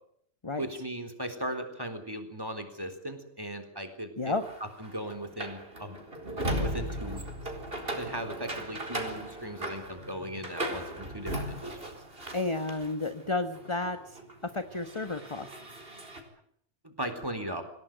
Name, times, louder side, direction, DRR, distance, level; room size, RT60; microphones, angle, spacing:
voice 1, 0.6-4.4 4.8-6.0 6.5-7.2 8.0-11.8 16.8-17.6, right 1 dB, 15° right, 7 dB, 3.9 m, -37 dB
sound 1, 4.4-13.1 13.5-16.2, right 1 dB, 40° right, 4.6 m, -37 dB
voice 2, 12.3-15.5, left 3 dB, 20° left, 10 dB, 1.3 m, -32 dB
26.5 x 18.5 x 9.2 m, 0.69 s
omnidirectional pair, 1.6 m